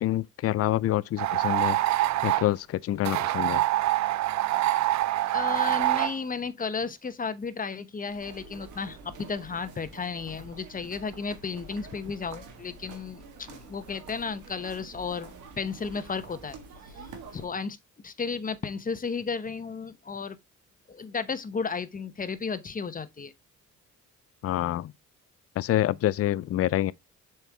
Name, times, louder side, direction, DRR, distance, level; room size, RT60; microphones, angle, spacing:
voice 1, 0.0-3.6 24.4-24.9 25.6-26.9, left 13 dB, 50° left, 0.4 m, -27 dB
sound 1, 1.2-2.5 3.0-6.1, right 15 dB, 65° right, 0.5 m, -25 dB
voice 2, 5.2-15.3 15.6-16.6 17.0-17.1 17.3-17.8 18.0-20.4 20.9-23.3, left 5 dB, 30° left, 0.9 m, -33 dB
sound 2, 8.0-17.5, right 4 dB, 80° right, 1.7 m, -47 dB
6.9 x 4.5 x 3.4 m
cardioid pair, 90°, 30 cm